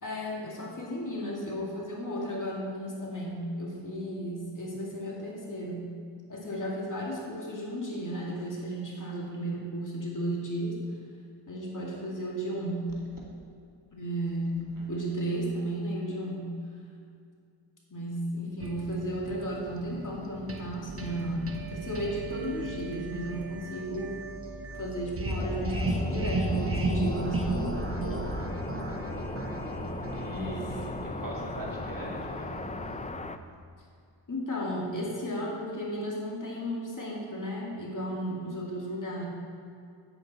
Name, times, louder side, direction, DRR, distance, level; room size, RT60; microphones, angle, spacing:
voice 1, 0.0-5.9 6.3-10.8 11.5-12.9 13.9-16.5 17.9-24.2 24.7-27.8 30.3-31.0 34.3-39.3, equal, 45° left, -3 dB, 2.2 m, -34 dB
sound 1, 18.6-33.1, right 2 dB, 30° right, 1.2 m, -35 dB
sound 2, 25.4-33.4, left 3 dB, 20° left, 0.4 m, -38 dB
voice 2, 28.1-28.5 30.1-32.6, right 2 dB, 45° right, -3 dB, 2.4 m, -43 dB
8.6 x 8.5 x 4.2 m, 2.3 s
cardioid pair, 65°, 44 cm